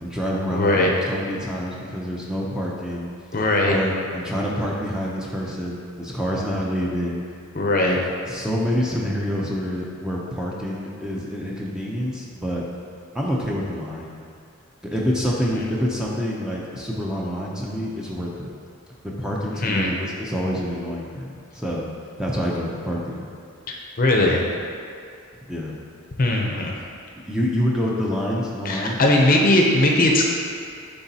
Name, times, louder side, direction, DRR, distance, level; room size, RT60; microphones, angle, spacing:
voice 1, 0.0-3.1 3.6-7.2 7.8-8.0 8.2-12.6 13.1-14.1 14.8-18.5 19.0-21.9 22.2-23.2 25.5-25.7 27.3-29.0, equal, 5° right, -4 dB, 0.5 m, -27 dB
voice 2, 0.5-0.9 3.3-3.8 7.5-8.0 19.6-19.9 23.7-24.4 26.2-26.7 28.6-30.2, left 1 dB, 40° left, 0 dB, 0.6 m, -19 dB
9.8 x 3.8 x 2.8 m, 2.3 s
head